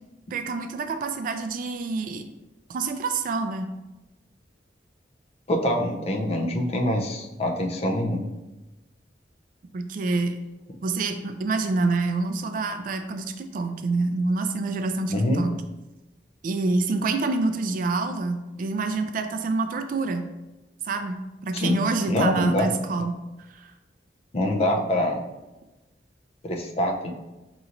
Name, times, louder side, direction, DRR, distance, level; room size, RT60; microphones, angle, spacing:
voice 1, 0.3-2.3 2.7-3.7 9.7-10.4 10.8-15.6 16.4-20.3 20.8-23.2 23.5-23.7 24.8-24.9, right 3 dB, 50° right, 8 dB, 0.3 m, -27 dB
voice 2, 5.5-8.3 15.1-15.4 21.5-21.8 22.1-22.7 24.3-25.2 26.4-27.1, left 1 dB, 35° left, 2 dB, 0.5 m, -24 dB
5.2 x 2.9 x 2.5 m, 1.1 s
head